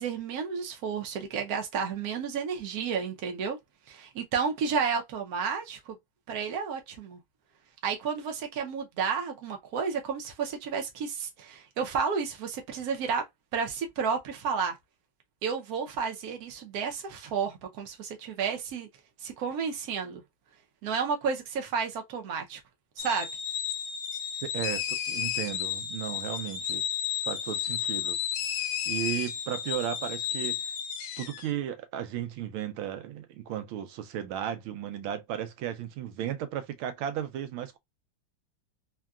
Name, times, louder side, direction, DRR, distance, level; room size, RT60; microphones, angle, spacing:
voice 1, 0.0-3.6 3.9-5.8 6.3-7.2 7.8-13.2 13.5-14.8 15.4-18.9 19.2-20.2 20.8-22.6 23.0-23.3, right 6 dB, 65° right, 0.9 m, -31 dB
sound 1, 23.0-31.5, left 9 dB, 80° left, 1.4 m, -32 dB
voice 2, 24.4-26.8 27.2-28.2 28.9-30.6 31.2-37.8, right 10 dB, 90° right, 1.4 m, -35 dB
3.8 x 2.2 x 2.3 m
omnidirectional pair, 2.2 m